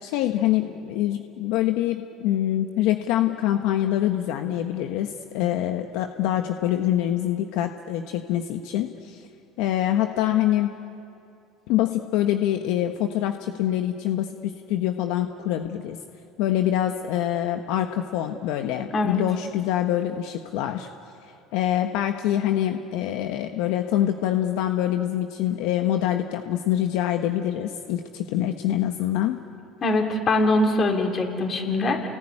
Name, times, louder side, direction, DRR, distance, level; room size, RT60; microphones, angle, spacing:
voice 1, 0.0-9.2 9.6-10.7 11.7-16.0 16.4-20.9 21.5-29.4, left 12 dB, 75° left, 6 dB, 1.2 m, -25 dB
voice 2, 29.8-32.1, left 2 dB, 35° left, 3 dB, 4.1 m, -22 dB
29.0 x 20.0 x 10.0 m, 2.6 s
supercardioid pair, 115°, 0 cm